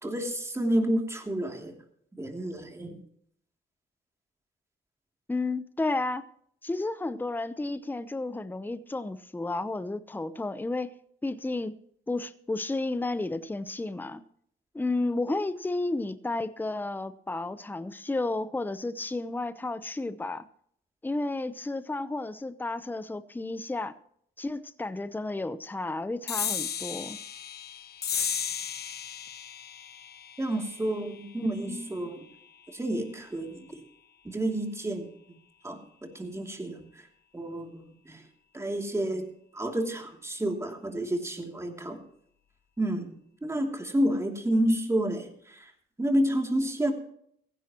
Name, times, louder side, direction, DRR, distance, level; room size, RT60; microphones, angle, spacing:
voice 1, 0.0-1.7 2.2-3.0 30.4-32.3 32.7-33.8 34.2-35.1 35.6-37.0 37.3-38.2 38.5-42.0 42.8-43.1 43.4-45.7 46.0-46.9, right 1 dB, 15° right, 2.8 m, -30 dB
voice 2, 5.3-6.2 6.6-10.9 11.2-11.8 12.1-14.2 14.7-20.4 21.0-23.9 24.4-27.2 31.4-32.0, left 2 dB, 10° left, 0.8 m, -32 dB
sound 1, 26.3-33.1, left 7 dB, 55° left, 1.1 m, -36 dB
16.5 x 15.0 x 3.0 m
cardioid pair, 90°, 20 cm